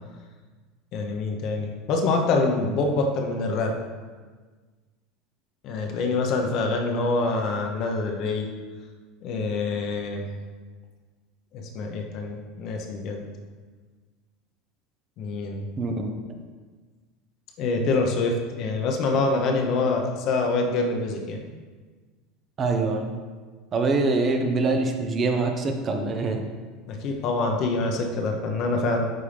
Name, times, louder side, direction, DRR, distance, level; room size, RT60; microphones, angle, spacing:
voice 1, 0.9-3.7 5.6-8.5 9.2-10.2 11.5-13.2 15.2-15.7 17.6-21.4 26.9-29.1, left 3 dB, 55° left, 2 dB, 1.0 m, -25 dB
voice 2, 15.8-16.1 22.6-23.1 23.7-26.5, right 3 dB, 35° right, 4 dB, 0.8 m, -24 dB
9.3 x 3.6 x 3.4 m, 1.4 s
hypercardioid pair, 90°, 0 cm